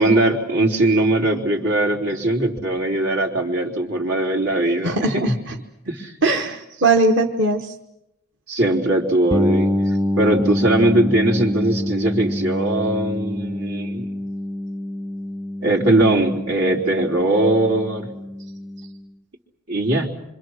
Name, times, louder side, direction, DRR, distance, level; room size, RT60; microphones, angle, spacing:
voice 1, 0.0-5.4 5.9-6.1 8.5-9.7 10.2-14.1 15.6-18.1 19.7-20.1, right 1 dB, 90° right, 2 dB, 4.0 m, -20 dB
voice 2, 4.8-5.3 6.2-7.7, right 2 dB, 55° right, 3 dB, 1.3 m, -19 dB
sound 1, 9.3-19.0, left 1 dB, 15° right, 0.8 m, -26 dB
27.0 x 25.5 x 6.5 m, 0.90 s
head